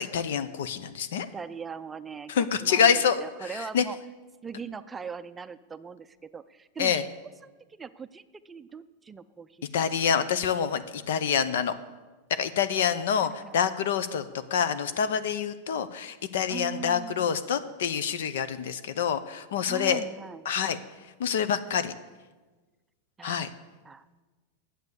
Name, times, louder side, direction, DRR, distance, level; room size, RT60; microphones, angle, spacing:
voice 1, 0.0-1.3 2.3-3.8 6.8-7.1 9.7-11.7 12.3-20.0 20.4-21.9 23.2-23.5, left 7 dB, 80° left, 12 dB, 0.8 m, -27 dB
voice 2, 1.3-4.0 4.4-7.1 7.8-9.7 13.2-13.6 16.5-17.3 19.7-20.5 23.2-23.5 23.8-24.1, right 6 dB, 15° right, 12 dB, 0.4 m, -40 dB
9.6 x 8.0 x 8.1 m, 1.3 s
supercardioid pair, 130°, 0 cm